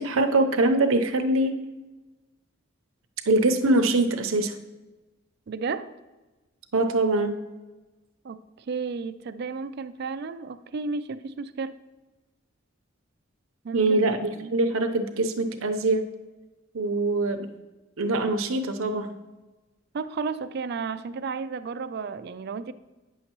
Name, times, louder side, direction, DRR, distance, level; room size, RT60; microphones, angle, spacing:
voice 1, 0.0-1.6 3.3-4.6 6.7-7.4 13.7-16.1 16.7-17.5 18.0-19.1, right 2 dB, 85° right, 6 dB, 0.8 m, -23 dB
voice 2, 5.5-5.9 8.2-8.4 8.7-11.8 13.6-14.1 14.3-14.6 19.9-22.7, right 4 dB, 50° right, 12 dB, 0.4 m, -33 dB
9.3 x 6.6 x 3.0 m, 1.1 s
head